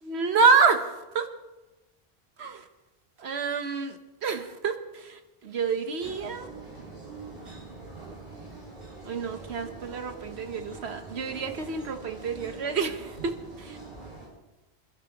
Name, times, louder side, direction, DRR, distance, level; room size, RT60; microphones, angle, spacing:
voice 1, 0.0-1.3 2.4-2.6 3.2-6.5 9.0-13.8, right 5 dB, 80° right, 7 dB, 1.3 m, -28 dB
sound 1, 6.0-14.3, right 3 dB, 60° right, 5.6 m, -44 dB
26.0 x 12.0 x 3.0 m, 1.1 s
omnidirectional pair, 1.1 m